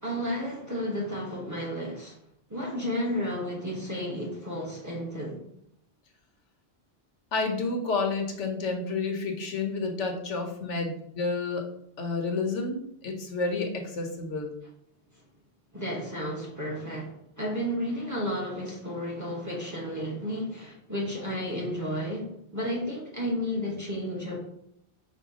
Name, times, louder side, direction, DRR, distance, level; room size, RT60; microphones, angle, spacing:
voice 1, 0.0-2.1 2.5-5.4 15.7-22.3 22.5-24.5, equal, 15° right, 1.0 m, -32 dB
voice 2, 7.3-11.6 12.0-14.6, left 3 dB, 85° left, 1.2 m, -30 dB
4.8 x 2.2 x 4.8 m
omnidirectional pair, 1.2 m